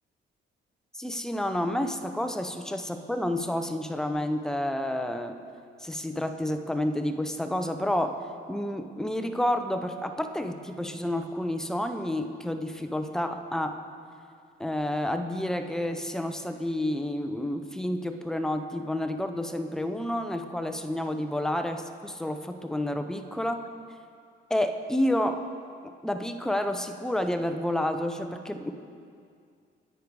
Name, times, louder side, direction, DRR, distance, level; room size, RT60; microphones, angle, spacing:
voice 1, 0.9-5.4 5.8-8.2 8.5-13.7 14.6-23.6 24.5-25.4 26.0-28.7, left 1 dB, 5° left, 7 dB, 0.6 m, -30 dB
10.0 x 8.5 x 4.7 m, 2.3 s
cardioid pair, 90°, 20 cm